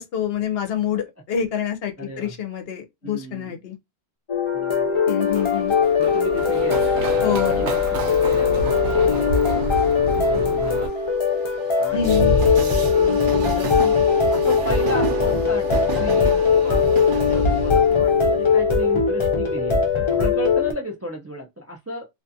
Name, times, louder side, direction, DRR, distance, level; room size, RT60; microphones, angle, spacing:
voice 1, 0.0-3.8 5.1-5.7 7.2-7.6 11.9-12.4, left 8 dB, 65° left, 0.8 m, -26 dB
voice 2, 2.0-2.3 3.0-3.6 4.5-5.0 6.0-6.9 7.4-9.7 10.0-10.9 11.8-13.9 14.3-22.1, equal, 25° right, 0.3 m, -34 dB
sound 1, 4.3-20.7, left 6 dB, 40° left, 0.5 m, -20 dB
Run, 5.3-10.9, right 3 dB, 80° right, 1.0 m, -31 dB
Train, 8.6-19.0, right 3 dB, 55° right, 0.8 m, -29 dB
2.4 x 2.4 x 2.6 m
omnidirectional pair, 1.1 m